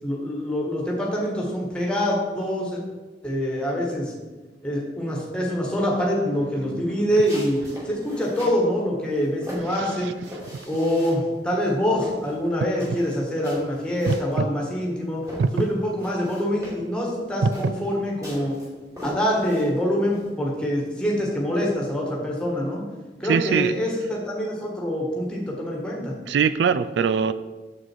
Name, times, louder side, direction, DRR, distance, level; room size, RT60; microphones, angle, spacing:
voice 1, 0.0-2.8 3.2-4.1 4.6-10.1 10.7-15.2 15.5-18.6 19.0-22.8 23.2-26.1, equal, 5° left, -3 dB, 1.6 m, -25 dB
sound 1, 7.1-8.6 9.1-11.3 11.6-14.9 15.2-20.3, equal, 20° right, 2.7 m, -40 dB
voice 2, 9.7-10.1 14.1-14.5 15.4-15.5 17.4-17.7 23.3-23.7 26.3-27.3, right 6 dB, 85° right, 14 dB, 0.3 m, -22 dB
7.1 x 6.4 x 4.6 m, 1.2 s
head